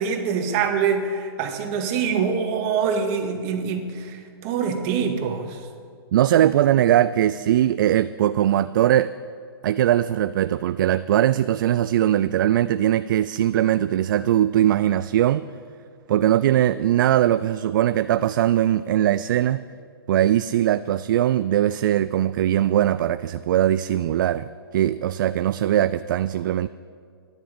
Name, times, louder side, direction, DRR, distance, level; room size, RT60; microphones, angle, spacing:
voice 1, 0.0-5.6, right 6 dB, 40° right, 4 dB, 2.1 m, -25 dB
voice 2, 6.1-9.1 9.6-15.5 16.1-19.6 20.1-24.5 24.7-26.7, right 12 dB, 55° right, 15 dB, 0.4 m, -20 dB
13.5 x 11.0 x 8.6 m, 2.2 s
hypercardioid pair, 120°, 13 cm